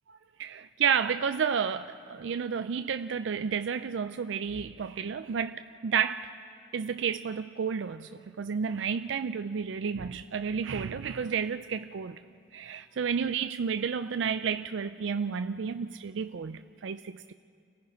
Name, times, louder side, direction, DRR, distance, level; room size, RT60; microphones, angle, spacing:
voice 1, 0.4-6.3 6.7-12.2 12.5-17.3, right 6 dB, 80° right, 9 dB, 0.4 m, -31 dB
29.5 x 18.5 x 5.2 m, 2.4 s
head